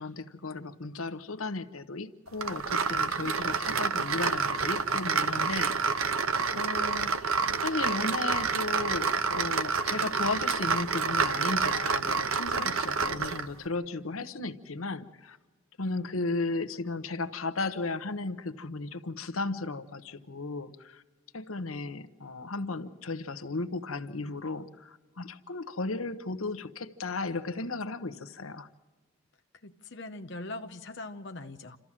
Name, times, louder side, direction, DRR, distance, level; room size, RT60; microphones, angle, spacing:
voice 1, 0.0-6.0 6.5-7.3 7.6-15.4 15.8-21.0 21.3-28.7, left 3 dB, 90° left, 11 dB, 1.0 m, -35 dB
sound 1, 2.4-13.5, right 5 dB, 85° right, 1.0 m, -28 dB
voice 2, 29.6-31.8, left 2 dB, 55° left, 6 dB, 0.8 m, -41 dB
28.0 x 14.0 x 7.4 m, 1.3 s
head